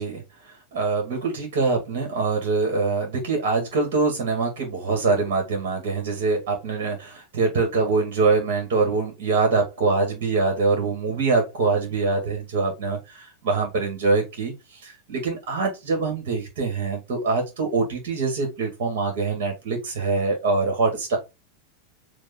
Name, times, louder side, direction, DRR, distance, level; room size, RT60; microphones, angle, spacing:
voice 1, 0.0-21.2, right 3 dB, 55° right, 2.3 m, -24 dB
7.4 x 2.9 x 4.5 m
figure-of-eight pair, 90°, 0 cm